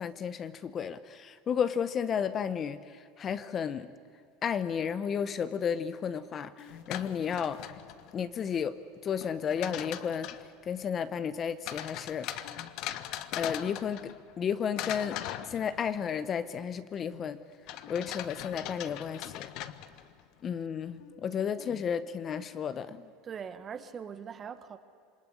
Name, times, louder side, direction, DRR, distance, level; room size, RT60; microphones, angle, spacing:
voice 1, 0.0-3.9 4.4-7.6 8.1-8.8 9.0-10.3 10.7-12.4 13.4-15.2 15.5-17.4 17.9-19.5 20.4-23.1, left 7 dB, 30° left, 0.8 m, -33 dB
sound 1, 6.2-7.9 9.6-10.0 12.4-12.7 12.9-13.0 14.8-15.6 17.1-17.5 17.8-18.1 18.3-18.4 20.9-21.3 21.6-22.7, left 9 dB, 75° left, 2.4 m, -51 dB
sound 2, 6.7-8.2 9.2-10.5 11.7-14.4 14.8-16.1 17.7-20.2, left 12 dB, 55° left, 1.2 m, -40 dB
voice 2, 23.2-24.8, right 7 dB, 25° right, 1.5 m, -41 dB
27.0 x 21.5 x 10.0 m
supercardioid pair, 145°, 0 cm